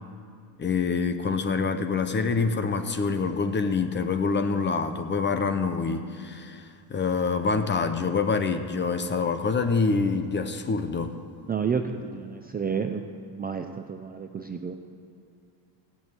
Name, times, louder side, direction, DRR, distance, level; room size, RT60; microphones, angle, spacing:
voice 1, 0.6-11.2, left 4 dB, 20° left, 8 dB, 0.8 m, -26 dB
voice 2, 11.5-13.1 13.3-14.7, right 6 dB, 20° right, 5 dB, 0.4 m, -30 dB
17.0 x 6.4 x 8.9 m, 2.5 s
cardioid pair, 140°, 49 cm